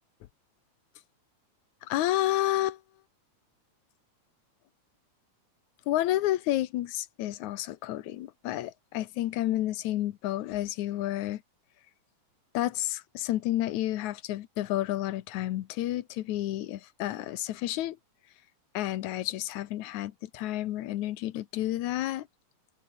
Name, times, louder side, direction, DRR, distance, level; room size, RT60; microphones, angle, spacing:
voice 1, 1.8-2.8 5.9-11.4 12.5-18.0 18.7-22.3, left 14 dB, 85° left, 2.4 m, -30 dB
omnidirectional pair, 3.4 m